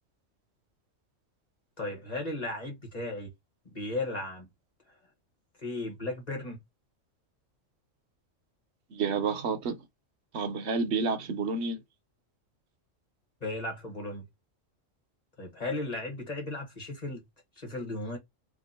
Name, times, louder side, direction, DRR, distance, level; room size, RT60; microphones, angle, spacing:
voice 1, 1.8-3.3 3.6-4.5 5.6-6.6 13.4-14.2 15.4-17.2 17.6-18.2, left 2 dB, 30° left, 1.4 m, -35 dB
voice 2, 8.9-9.9 10.3-11.8, right 4 dB, 65° right, 0.9 m, -30 dB
2.8 x 2.4 x 4.2 m
omnidirectional pair, 1.3 m